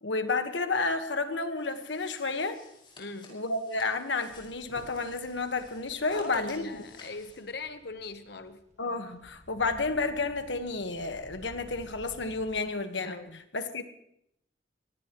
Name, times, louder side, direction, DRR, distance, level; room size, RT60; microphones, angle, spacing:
voice 1, 0.0-2.6 3.3-6.7 8.8-13.2 13.5-13.8, left 3 dB, 80° left, 8 dB, 1.5 m, -31 dB
sound 1, 1.6-7.4, left 2 dB, 25° left, 5.5 m, -54 dB
voice 2, 3.0-3.3 6.1-8.6 13.0-13.4, left 3 dB, 60° left, 9 dB, 1.1 m, -40 dB
sound 2, 4.3-12.6, equal, 40° right, 1.9 m, -54 dB
23.5 x 18.5 x 3.1 m, 0.76 s
head